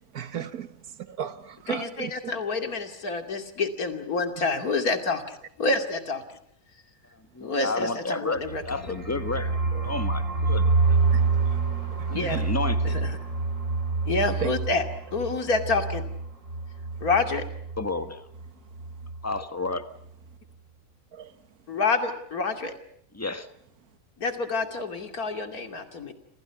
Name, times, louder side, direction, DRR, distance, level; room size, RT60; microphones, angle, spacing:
voice 1, 0.1-0.7 1.1-2.3 9.7-9.9 11.1-11.4 12.1-12.5 14.4-14.5 21.1-21.3, right 9 dB, 80° right, 1.8 m, -35 dB
voice 2, 1.7-6.4 7.4-8.6 12.1-12.4 12.8-13.2 14.0-14.9 15.1-16.0 17.0-17.5 21.7-22.7 24.2-26.1, left 3 dB, 80° left, 3.0 m, -28 dB
voice 3, 7.3-9.6 9.8-11.0 12.1-12.9 17.8-18.2 19.2-19.8 23.1-23.5, left 3 dB, 10° left, 1.3 m, -31 dB
sound 1, 8.4-18.1 18.4-18.5 18.8-19.2, right 4 dB, 60° right, 4.6 m, -27 dB
28.5 x 27.0 x 5.9 m
omnidirectional pair, 1.5 m